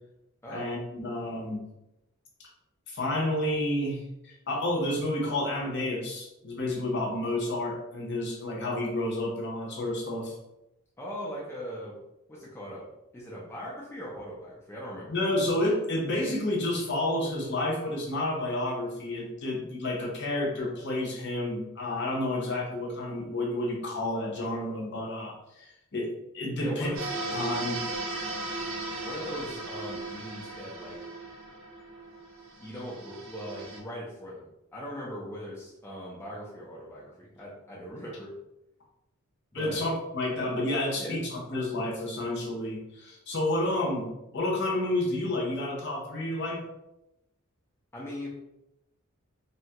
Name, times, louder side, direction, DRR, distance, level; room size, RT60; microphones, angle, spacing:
voice 1, 0.5-1.6 2.9-10.3 15.1-26.1 26.3-26.9 27.3-27.8 39.5-44.1 44.3-46.6, left 1 dB, 55° left, -2 dB, 0.7 m, -30 dB
voice 2, 11.0-12.0 12.3-15.1 26.6-27.4 29.0-31.0 32.6-38.3 39.5-39.8 41.0-41.2 47.9-48.3, equal, 10° left, -5 dB, 0.4 m, -40 dB
sound 1, 26.9-33.8, right 2 dB, 70° right, 0.7 m, -37 dB
2.9 x 2.2 x 2.8 m, 0.90 s
head